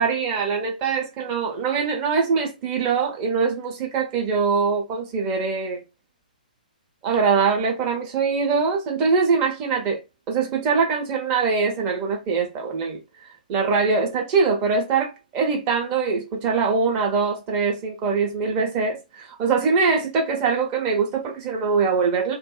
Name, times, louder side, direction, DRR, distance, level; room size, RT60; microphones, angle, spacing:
voice 1, 0.0-5.8 7.0-10.0 10.3-13.0 13.5-22.3, right 5 dB, 25° right, 0.8 m, -23 dB
2.6 x 2.0 x 2.4 m
figure-of-eight pair, 125°, 5 cm